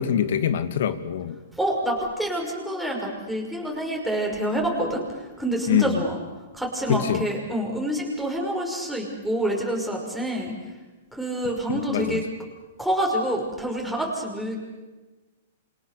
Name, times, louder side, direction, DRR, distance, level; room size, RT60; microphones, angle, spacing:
voice 1, 0.0-1.4 5.7-6.0 6.9-7.2 11.7-12.2, left 9 dB, 65° left, 11 dB, 2.3 m, -24 dB
voice 2, 1.5-6.2 6.5-10.5 11.1-12.2 12.8-14.6, right 1 dB, ahead, -2 dB, 5.7 m, -27 dB
28.5 x 27.0 x 6.9 m, 1.2 s
hypercardioid pair, 155°, 0 cm